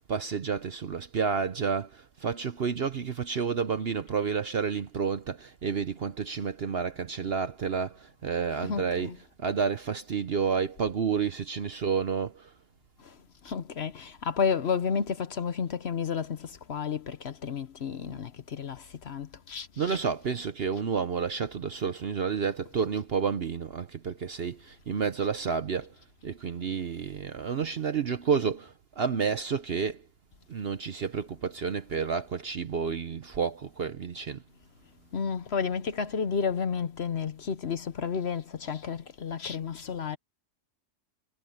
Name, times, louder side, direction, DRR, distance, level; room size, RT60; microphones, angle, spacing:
voice 1, 0.0-12.5 19.8-25.9 26.2-30.0 30.5-34.4, right 6 dB, 50° right, 0.8 m, -30 dB
voice 2, 8.6-9.2 13.0-13.2 13.4-20.0 35.1-40.2, left 6 dB, 50° left, 0.9 m, -31 dB
omnidirectional pair, 1.7 m